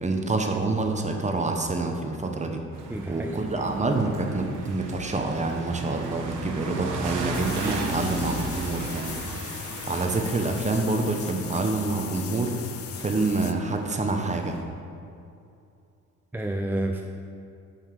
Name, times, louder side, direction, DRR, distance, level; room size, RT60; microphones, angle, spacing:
voice 1, 0.0-2.6 3.1-12.6 13.0-14.6, right 3 dB, 25° right, 3 dB, 0.9 m, -27 dB
sound 1, 2.7-14.6, right 2 dB, 90° right, 1.1 m, -36 dB
voice 2, 2.9-3.8 4.4-4.6 16.3-17.0, right 1 dB, 5° right, 3 dB, 0.3 m, -31 dB
sound 2, 7.3-13.5, left 9 dB, 50° left, 0.6 m, -38 dB
5.7 x 5.3 x 6.6 m, 2.6 s
cardioid pair, 90°, 30 cm